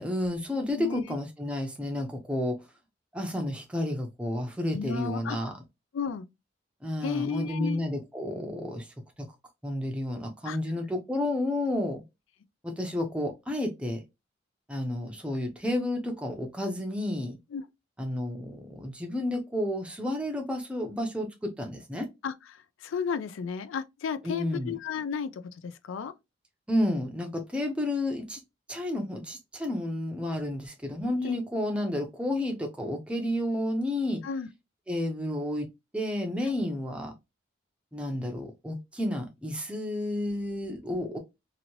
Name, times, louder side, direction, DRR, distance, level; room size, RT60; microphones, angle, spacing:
voice 1, 0.0-2.6 3.1-5.6 6.8-8.9 9.2-9.3 9.6-12.0 12.6-14.0 14.7-17.4 18.0-22.1 24.2-24.8 26.7-28.4 28.7-34.2 34.9-35.7 35.9-37.1 37.9-41.2, left 1 dB, 5° right, 0.5 m, -31 dB
voice 2, 4.7-5.4 5.9-6.2 7.0-7.8 10.5-10.6 17.5-17.6 22.2-22.3 22.8-25.3 25.6-26.1 31.2-31.4 34.2-34.5, left 6 dB, 75° left, 0.4 m, -33 dB
2.8 x 2.6 x 2.9 m
head